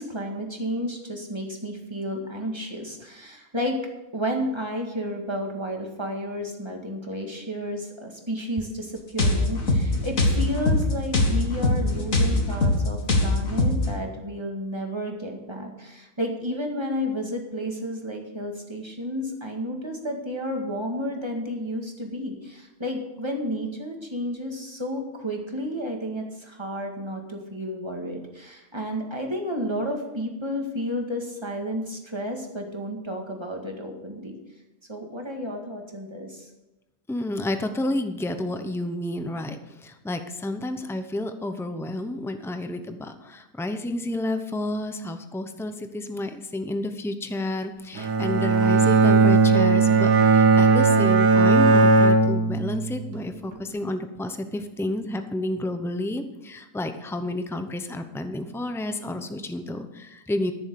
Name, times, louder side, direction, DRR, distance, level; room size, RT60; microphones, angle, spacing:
voice 1, 0.0-3.8 4.1-34.3 34.9-36.5, equal, 15° right, 1 dB, 1.9 m, -31 dB
sound 1, 9.2-13.9, left 2 dB, 55° left, 2.2 m, -22 dB
voice 2, 37.1-39.6 39.8-60.5, left 1 dB, 5° left, 8 dB, 0.4 m, -30 dB
Bowed string instrument, 48.0-53.2, right 4 dB, 75° right, 1.8 m, -18 dB
14.0 x 7.1 x 6.7 m, 1.0 s
omnidirectional pair, 1.7 m